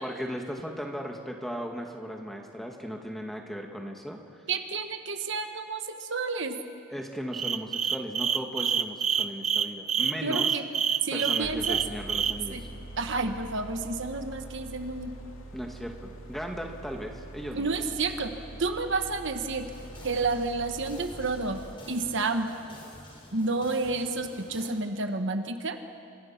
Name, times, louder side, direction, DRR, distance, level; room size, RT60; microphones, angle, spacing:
voice 1, 0.0-4.2 6.9-10.5 11.1-12.7 15.5-17.7, equal, ahead, 1 dB, 2.0 m, -37 dB
voice 2, 4.5-6.6 10.2-10.7 11.0-11.8 12.5-12.6 13.0-15.1 17.5-18.3 18.6-19.7 20.0-22.5 23.3-25.8, right 3 dB, 55° right, 6 dB, 1.3 m, -30 dB
sound 1, 7.3-12.3, right 7 dB, 30° right, 0.7 m, -27 dB
sound 2, 11.4-21.7, right 2 dB, 65° left, 2.7 m, -44 dB
sound 3, 19.5-24.7, left 1 dB, 25° left, 4.7 m, -49 dB
29.5 x 26.5 x 5.9 m, 2.6 s
head